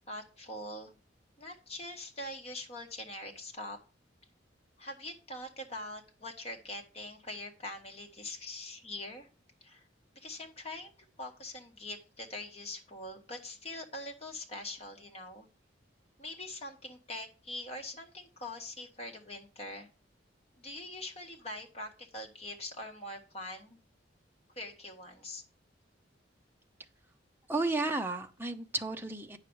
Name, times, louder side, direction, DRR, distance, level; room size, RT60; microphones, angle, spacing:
voice 1, 0.1-0.9 1.4-3.8 4.8-9.3 9.6-9.9 10.1-10.9 11.2-15.5 16.2-19.9 20.6-23.8 24.5-25.4, left 1 dB, 35° left, 2 dB, 1.6 m, -43 dB
voice 2, 27.5-29.4, right 2 dB, 10° right, 5 dB, 0.7 m, -33 dB
9.0 x 6.5 x 4.7 m, 0.33 s
head